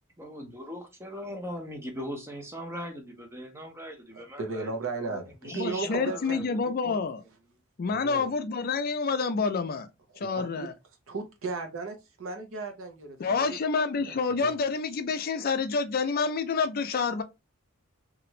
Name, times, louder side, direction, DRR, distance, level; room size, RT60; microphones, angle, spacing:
voice 1, 0.2-6.5 6.8-7.0, equal, 10° right, 0.7 m, -40 dB
voice 2, 4.2-6.5 7.9-8.3 10.3-10.7 11.1-13.2 13.5-13.6 14.1-14.6, right 4 dB, 65° right, 0.8 m, -35 dB
voice 3, 5.5-7.2 7.8-9.9 10.2-10.7 13.2-17.2, left 4 dB, 45° left, 0.4 m, -28 dB
2.9 x 2.5 x 3.0 m
head